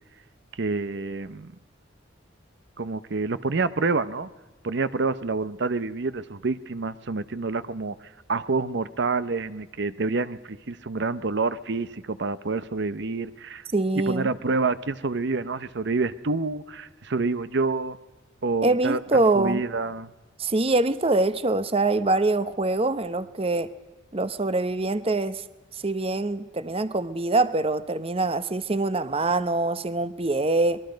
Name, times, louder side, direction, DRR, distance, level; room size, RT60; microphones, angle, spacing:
voice 1, 0.5-1.5 2.8-4.3 4.6-13.6 14.0-18.0 18.4-19.0 19.4-20.1, right 3 dB, 60° right, 13 dB, 0.7 m, -28 dB
voice 2, 13.7-14.3 18.6-19.6 20.4-23.7 24.1-25.4 25.8-30.8, right 2 dB, 30° right, 13 dB, 0.8 m, -24 dB
25.5 x 21.5 x 5.2 m, 1.1 s
head